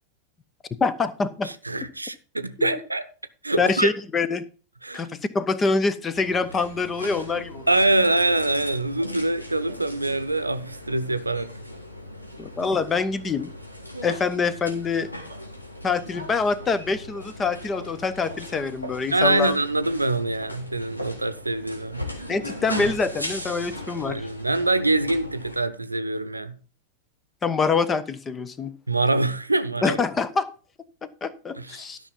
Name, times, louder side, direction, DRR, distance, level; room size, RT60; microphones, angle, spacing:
voice 1, 0.8-1.5 2.6-2.8 3.6-4.4 4.9-7.7 12.4-13.5 14.0-15.1 15.8-19.5 22.3-24.2 27.4-28.7 29.8-30.5 31.0-32.0, left 4 dB, 20° left, 0.9 m, -25 dB
voice 2, 1.4-3.1 3.4-3.9 4.8-5.1 7.7-11.5 19.1-22.1 24.0-26.5 28.9-30.0 31.6-31.9, right 2 dB, 85° right, 0.8 m, -24 dB
sound 1, 6.1-25.6, left 1 dB, 85° left, 2.4 m, -38 dB
12.5 x 5.9 x 5.4 m
figure-of-eight pair, 90°, 0 cm